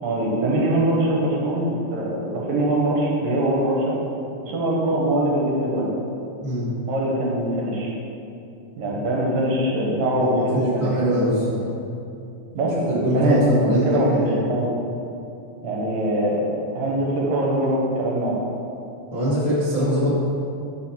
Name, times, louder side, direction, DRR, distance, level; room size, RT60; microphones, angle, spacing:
voice 1, 0.0-3.9 4.4-5.9 6.9-7.9 8.8-11.0 12.5-14.7 15.6-18.4, right 1 dB, 70° right, -3 dB, 2.2 m, -22 dB
voice 2, 10.2-11.6 12.9-14.4 19.1-20.1, equal, 75° left, -11 dB, 0.3 m, -23 dB
4.8 x 4.4 x 5.7 m, 2.7 s
omnidirectional pair, 3.4 m